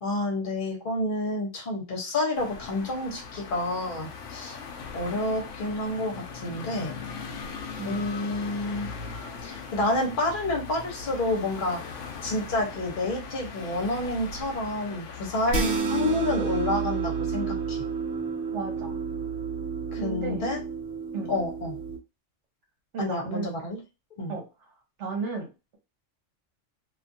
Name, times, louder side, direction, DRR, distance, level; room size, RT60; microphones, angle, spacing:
voice 1, 0.0-4.6 4.9-7.0 7.8-8.9 9.4-11.8 12.2-17.8 19.9-20.6 21.3-21.8 23.0-23.8 24.2-24.3, left 2 dB, 45° left, 0 dB, 1.1 m, -29 dB
sound 1, 2.3-15.8, left 5 dB, 80° left, 0.9 m, -39 dB
sound 2, 15.5-22.0, right 5 dB, 55° right, 0.8 m, -30 dB
voice 2, 18.5-19.0 20.0-20.5 21.1-21.3 22.9-23.6 24.3-24.4 25.0-25.5, right 4 dB, 70° right, 2 dB, 1.2 m, -33 dB
2.6 x 2.5 x 2.6 m, 0.28 s
omnidirectional pair, 1.3 m